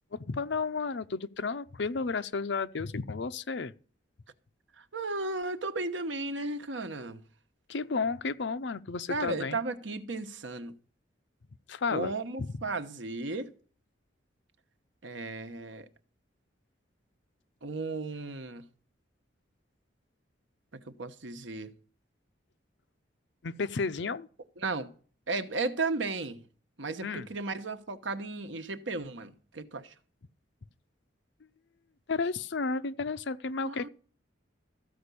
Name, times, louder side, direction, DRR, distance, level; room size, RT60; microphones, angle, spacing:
voice 1, 0.1-3.7 7.7-9.6 11.7-12.1 12.4-12.5 23.4-24.3 27.0-27.3 32.1-33.9, left 4 dB, 65° left, 0.6 m, -32 dB
voice 2, 4.8-7.2 9.1-10.7 11.9-13.5 15.0-15.9 17.6-18.6 20.9-21.7 24.6-24.9 25.3-26.4 26.8-29.9 33.6-33.9, right 3 dB, 75° right, 1.1 m, -35 dB
14.0 x 5.2 x 8.3 m
head